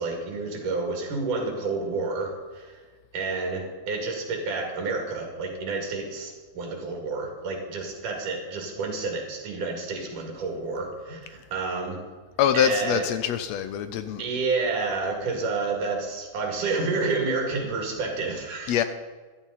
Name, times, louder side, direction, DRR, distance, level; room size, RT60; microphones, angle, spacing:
voice 1, 0.0-2.8 3.1-12.0 12.5-13.1 14.2-18.9, right 3 dB, 80° right, 1 dB, 3.8 m, -29 dB
voice 2, 12.4-14.2 18.7-18.8, left 9 dB, 80° left, 10 dB, 1.5 m, -24 dB
14.5 x 12.5 x 4.1 m, 1.4 s
omnidirectional pair, 3.6 m